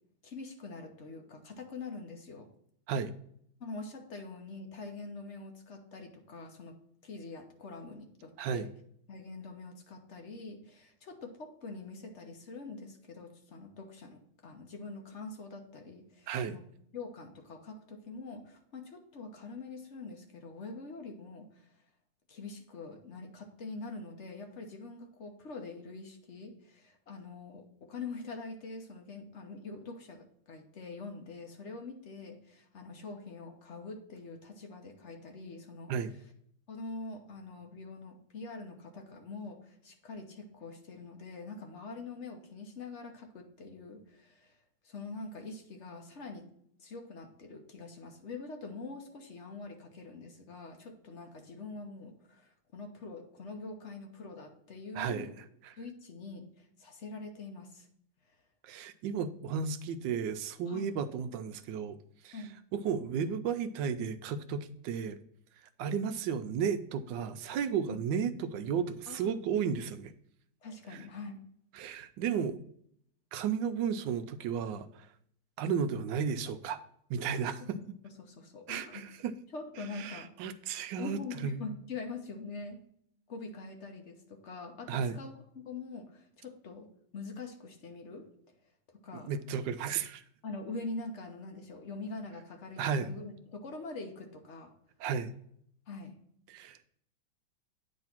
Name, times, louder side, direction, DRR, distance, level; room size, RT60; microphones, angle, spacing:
voice 1, 0.2-2.5 3.6-6.8 7.0-8.7 9.1-16.6 16.9-21.7 22.3-35.9 36.7-44.6 44.8-46.5 46.8-55.3 55.8-57.9 60.7-60.9 62.3-62.5 67.8-68.0 69.1-69.4 70.6-71.4 77.6-79.0 79.5-80.3 81.0-82.8 83.3-88.3 88.9-89.3 90.4-94.7 95.9-96.2, left 3 dB, 45° left, 4 dB, 1.1 m, -44 dB
voice 2, 54.9-55.3 55.6-55.7 58.6-62.0 62.2-62.4 62.7-65.2 65.8-70.1 70.9-71.0 71.8-72.6 73.3-75.1 75.6-76.8 77.1-77.8 78.7-79.3 79.9-81.7 84.9-85.2 89.1-90.2 92.8-93.1 95.0-95.3 96.5-96.8, right 7 dB, 80° right, 10 dB, 1.3 m, -33 dB
8.9 x 3.2 x 5.8 m, 0.68 s
omnidirectional pair, 2.0 m